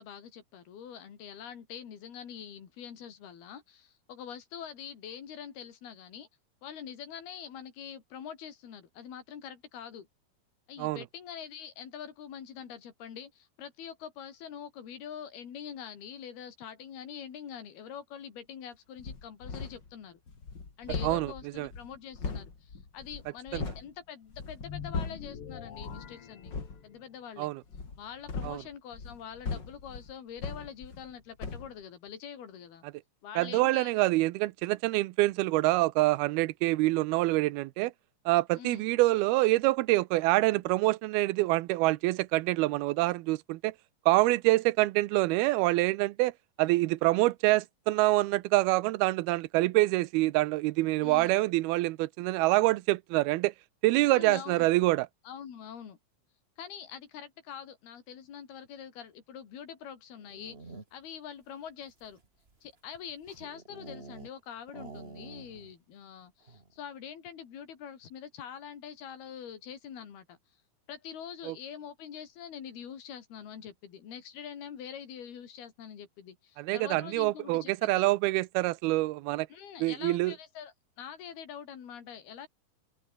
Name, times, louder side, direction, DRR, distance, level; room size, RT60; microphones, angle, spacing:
voice 1, 0.0-6.3 6.6-10.1 10.7-20.2 20.8-26.5 26.8-27.5 28.0-32.8 33.2-33.9 38.5-38.8 51.0-51.4 53.9-54.7 55.2-56.0 56.6-62.2 62.6-70.4 70.9-78.0 79.5-82.5, left 8 dB, 85° left, 5.1 m, -44 dB
sound 1, 19.0-19.9 20.3-23.9 24.3-25.4 25.7-26.1 26.4-26.8 27.7-31.1 31.4-31.7, left 4 dB, 30° left, 3.5 m, -39 dB
voice 2, 21.0-21.7 23.5-23.6 27.4-27.6 28.4-28.6 33.4-37.9 38.3-43.7 44.1-46.3 46.6-53.5 53.8-55.1 71.5-71.6 76.6-79.5 79.8-80.3, right 19 dB, 90° right, 2.7 m, -26 dB
sound 2, 24.6-27.2, left 8 dB, 45° left, 2.2 m, -44 dB
sound 3, 60.1-61.2 61.8-64.4 64.7-65.8 66.0-66.1 66.4-66.8, right 3 dB, 20° right, 2.2 m, -48 dB
open air
omnidirectional pair, 4.3 m